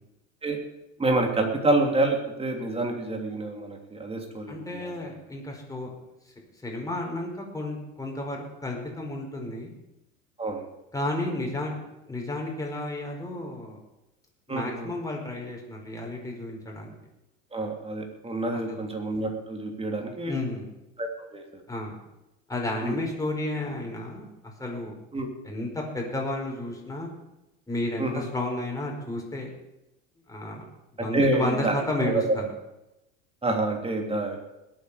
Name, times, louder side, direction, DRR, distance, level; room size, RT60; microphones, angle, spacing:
voice 1, 1.0-5.1 10.4-10.6 14.5-14.9 17.5-20.4 21.0-21.4 22.8-23.0 25.1-25.3 28.0-28.2 31.1-32.2 33.4-34.4, right 2 dB, 15° right, 3 dB, 3.2 m, -28 dB
voice 2, 4.5-5.9 6.6-9.7 10.9-11.8 12.1-13.8 14.5-16.9 18.7-18.8 20.3-20.7 21.7-22.0 22.5-24.9 25.4-27.1 27.7-29.5 30.3-30.6 31.0-32.4, left 2 dB, 10° left, 0 dB, 4.9 m, -32 dB
21.0 x 9.0 x 5.1 m, 0.94 s
supercardioid pair, 105°, 38 cm